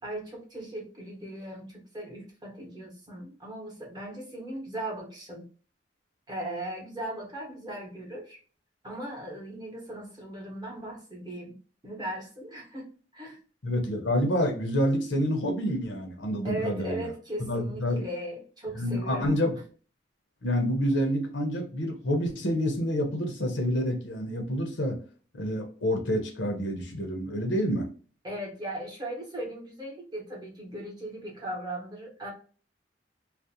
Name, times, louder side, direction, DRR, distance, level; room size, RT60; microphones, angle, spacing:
voice 1, 0.0-5.5 6.3-8.4 8.8-11.6 11.8-13.4 16.4-19.4 28.2-32.3, right 1 dB, 25° right, -1 dB, 0.8 m, -38 dB
voice 2, 13.6-17.1 17.4-18.0 18.8-19.6 20.4-25.0 25.3-27.9, equal, 75° left, 3 dB, 0.7 m, -28 dB
2.4 x 2.0 x 2.7 m, 0.39 s
head